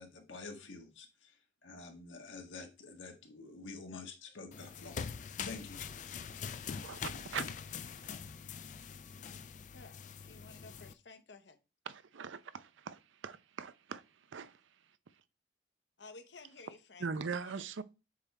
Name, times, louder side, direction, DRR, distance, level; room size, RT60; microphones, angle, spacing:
voice 1, 0.0-1.3 1.6-5.9, left 3 dB, 90° left, 1.5 m, -48 dB
sound 1, 4.5-10.9, left 6 dB, 40° left, 0.4 m, -43 dB
voice 2, 6.8-8.1 11.9-14.6 17.0-17.8, right 5 dB, 85° right, 0.5 m, -42 dB
voice 3, 9.7-11.6 16.0-17.7, left 3 dB, 70° left, 0.9 m, -55 dB
7.3 x 3.5 x 4.2 m
head